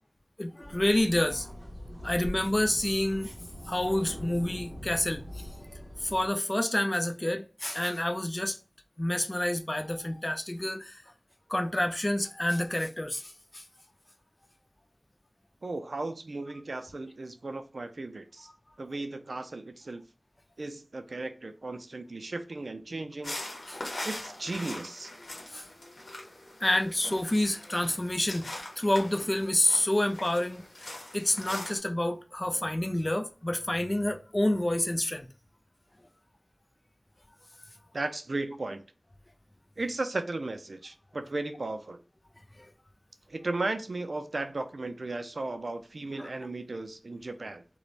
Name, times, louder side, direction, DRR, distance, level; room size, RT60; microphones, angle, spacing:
voice 1, 0.4-1.5 2.0-3.3 3.6-5.5 6.0-8.6 9.0-11.0 11.5-13.6 23.7-23.8 25.4-26.3 26.6-30.6 31.1-35.3 46.2-46.3, left 1 dB, 30° left, 0.3 m, -28 dB
sound 1, 0.6-6.3, equal, 15° right, 0.9 m, -42 dB
voice 2, 15.6-18.5 18.8-20.0 20.6-23.4 24.0-25.1 37.9-38.8 39.8-42.0 43.3-47.6, right 2 dB, 70° right, 0.3 m, -35 dB
sound 2, 23.2-31.8, left 1 dB, 90° left, 0.8 m, -42 dB
2.4 x 2.1 x 3.1 m
wide cardioid pair, 50°, 0 cm